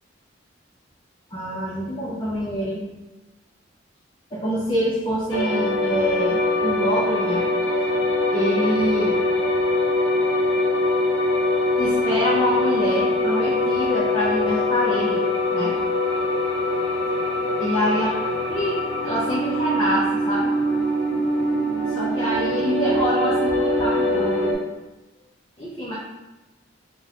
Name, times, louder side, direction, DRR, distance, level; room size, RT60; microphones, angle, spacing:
voice 1, 1.3-2.9 4.3-7.4 8.3-9.6 11.8-15.2 15.5-15.8 17.6-18.2 18.5-20.5 21.9-24.6 25.6-25.9, equal, 25° left, -8 dB, 0.6 m, -26 dB
sound 1, 5.3-24.5, left 1 dB, 70° left, 0.5 m, -23 dB
3.7 x 2.3 x 2.9 m, 1.1 s
head